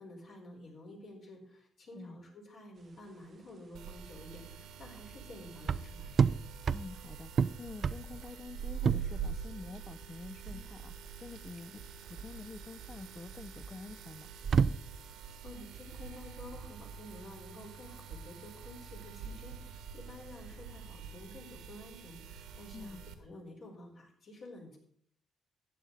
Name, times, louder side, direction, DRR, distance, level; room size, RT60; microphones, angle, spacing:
voice 1, 0.0-6.1 15.2-24.8, left 1 dB, 60° left, 0 dB, 4.3 m, -51 dB
sound 1, 2.8-21.0, right 6 dB, 50° right, 0.4 m, -35 dB
sound 2, 3.7-23.1, right 7 dB, 90° right, 1.3 m, -45 dB
voice 2, 6.7-14.3 22.7-23.0, left 3 dB, 30° left, 14 dB, 0.5 m, -48 dB
14.0 x 9.1 x 4.0 m, 0.64 s
cardioid pair, 90°, 0 cm